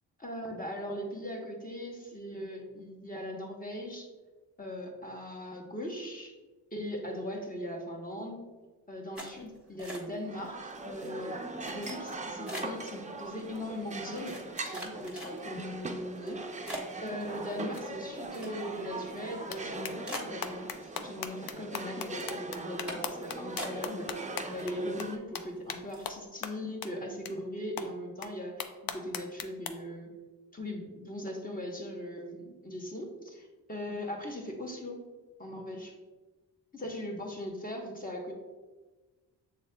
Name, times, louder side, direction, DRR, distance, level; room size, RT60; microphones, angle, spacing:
voice 1, 0.2-4.1 4.6-6.3 6.7-8.4 8.9-24.2 24.5-30.2 30.5-35.0 35.4-35.9 36.7-38.3, left 1 dB, 20° left, 0 dB, 1.0 m, -39 dB
sound 1, 9.1-10.4 10.7-11.1 11.6-12.9 13.5-13.6 14.2-15.7 16.2-16.3 16.7-18.9 19.2-19.3 19.6-19.7 20.0-21.1 21.4-21.9 22.2-22.4 22.9-23.2 23.6-24.2 24.4-25.1 25.4-25.6 25.9-26.1, equal, 5° right, 1.3 m, -43 dB
sound 2, 10.2-25.2, right 3 dB, 20° right, 0.5 m, -41 dB
sound 3, 19.5-19.6 19.8-24.7 25.0-25.1 25.3-25.4 25.7-25.8 26.0-26.1 26.4-26.5 26.8-26.9 27.2-27.3 27.8-27.9 28.2-28.3 28.6-29.7, left 8 dB, 55° left, 0.5 m, -37 dB
6.3 x 3.7 x 2.2 m, 1.2 s
supercardioid pair, 55°, 42 cm